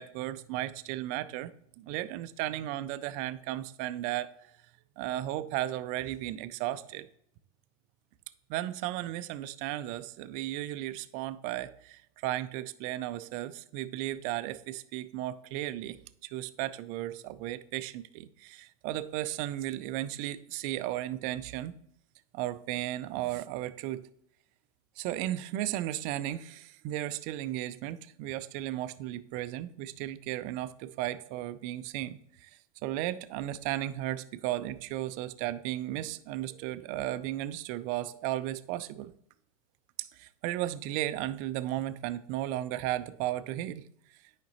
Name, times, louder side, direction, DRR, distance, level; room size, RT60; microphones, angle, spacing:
voice 1, 0.0-1.5 1.8-4.3 5.0-7.1 8.5-21.7 22.3-24.1 25.0-32.5 32.8-39.1 40.0-43.8, right 14 dB, 45° right, 0.5 m, -35 dB
9.2 x 5.1 x 3.0 m
hypercardioid pair, 105°, 19 cm